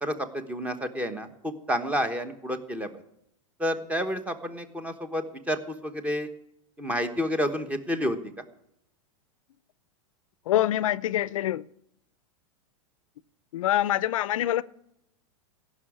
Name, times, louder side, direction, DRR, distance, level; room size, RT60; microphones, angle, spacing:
voice 1, 0.0-2.9 3.6-6.3 6.8-8.3, equal, 10° right, 1.1 m, -30 dB
voice 2, 10.5-11.6 13.5-14.6, left 12 dB, 80° left, 0.5 m, -25 dB
15.5 x 6.3 x 10.0 m
supercardioid pair, 145°, 17 cm